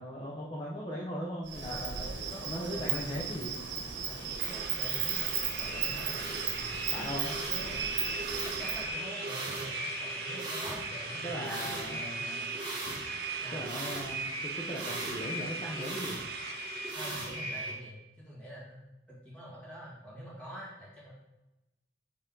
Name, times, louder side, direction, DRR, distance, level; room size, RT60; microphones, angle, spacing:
voice 1, 0.0-2.1 2.5-3.6 6.9-7.3 11.2-12.5 13.5-16.2, equal, 25° left, -4 dB, 0.7 m, -38 dB
Insect, 1.5-8.9, right 7 dB, 70° right, 1.0 m, -35 dB
voice 2, 1.6-3.3 4.1-7.8 8.6-12.4 13.4-13.6 16.9-21.1, equal, 5° left, -7 dB, 1.8 m, -46 dB
sound 1, 2.9-17.7, right 2 dB, 25° right, 1.2 m, -38 dB
sound 2, 4.4-16.9, right 6 dB, 55° right, 0.4 m, -43 dB
6.8 x 3.7 x 3.8 m, 0.99 s
head